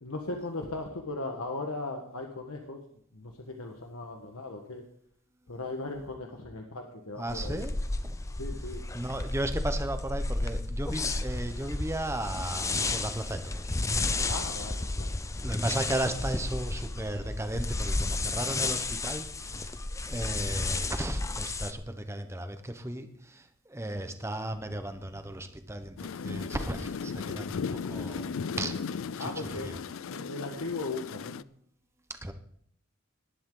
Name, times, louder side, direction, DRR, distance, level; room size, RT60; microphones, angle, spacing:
voice 1, 0.0-2.8 3.1-4.8 5.5-7.6 8.4-8.8 14.3-15.1 29.2-29.7 30.1-31.4, left 2 dB, 80° left, 2 dB, 1.5 m, -37 dB
voice 2, 7.2-7.7 8.0-8.2 8.9-14.2 15.4-28.8 29.2-29.8 32.1-32.3, right 1 dB, 10° right, 8 dB, 1.0 m, -35 dB
sound 1, 7.3-21.7, left 2 dB, 15° left, 0.5 m, -32 dB
sound 2, 26.0-31.4, left 5 dB, 65° left, 0.4 m, -36 dB
19.0 x 11.0 x 3.9 m, 0.66 s
head